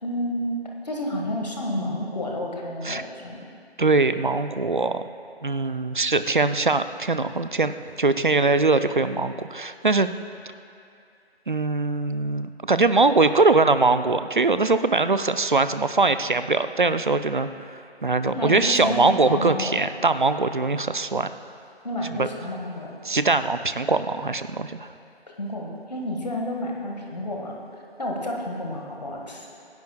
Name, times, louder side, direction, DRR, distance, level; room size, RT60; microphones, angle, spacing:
voice 1, 0.0-3.4 18.2-19.9 21.8-23.0 25.3-27.5 28.0-29.5, left 1 dB, 40° left, -1 dB, 1.6 m, -30 dB
voice 2, 3.8-5.0 5.4-10.1 11.5-21.3 22.2-22.3 23.0-24.9, right 3 dB, 50° right, 11 dB, 0.5 m, -22 dB
25.5 x 10.5 x 2.3 m, 2.5 s
figure-of-eight pair, 170°, 33 cm